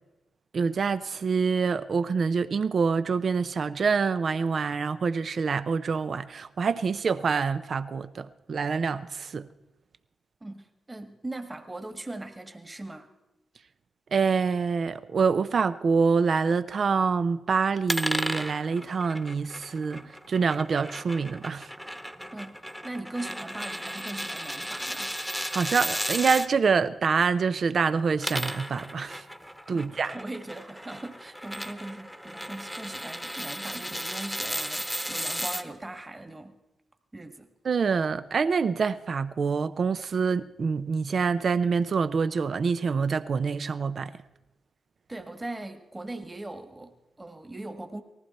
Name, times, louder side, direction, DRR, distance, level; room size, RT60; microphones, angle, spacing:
voice 1, 0.5-9.5 14.1-21.7 25.5-29.2 29.7-30.2 37.6-44.1, right 5 dB, 60° right, 0.6 m, -26 dB
voice 2, 10.4-13.1 22.3-25.2 29.7-36.6 37.1-37.5 45.1-48.0, right 2 dB, 25° right, 1.7 m, -40 dB
sound 1, 17.9-26.5 28.0-35.6, equal, ahead, 1.1 m, -35 dB
19.0 x 14.5 x 4.3 m
supercardioid pair, 45°, 0 cm